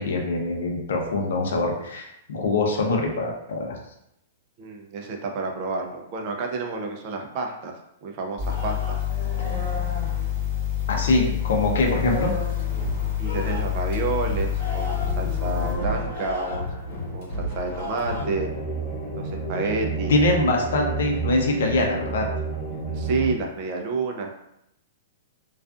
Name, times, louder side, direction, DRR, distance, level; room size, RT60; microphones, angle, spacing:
voice 1, 0.0-3.8 10.9-12.3 20.1-22.3, left 2 dB, 75° left, 1 dB, 0.6 m, -23 dB
voice 2, 4.6-7.8 8.0-9.0 13.2-16.7 17.1-18.5 19.2-20.1 22.9-24.4, right 3 dB, 40° right, 2 dB, 0.4 m, -29 dB
sound 1, 8.4-15.8, left 11 dB, 15° right, 1.1 m, -27 dB
sound 2, 8.5-11.1 11.4-18.3, equal, 60° left, 1.0 m, -33 dB
sound 3, 18.2-23.3, right 4 dB, ahead, 0.8 m, -30 dB
2.4 x 2.4 x 2.4 m, 0.79 s
hypercardioid pair, 155°, 0 cm